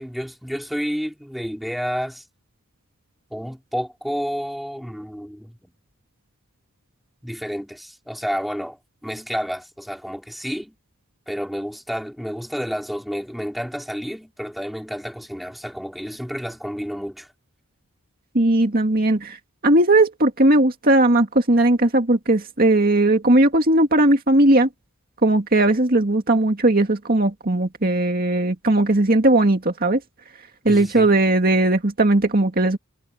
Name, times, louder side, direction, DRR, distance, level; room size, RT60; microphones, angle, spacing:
voice 1, 0.0-2.2 3.3-5.7 7.2-10.7 11.3-17.3 30.7-31.1, equal, ahead, 3.7 m, -30 dB
voice 2, 18.3-19.4 19.6-24.7 25.2-30.0 30.7-32.8, right 2 dB, 40° right, 2.2 m, -18 dB
head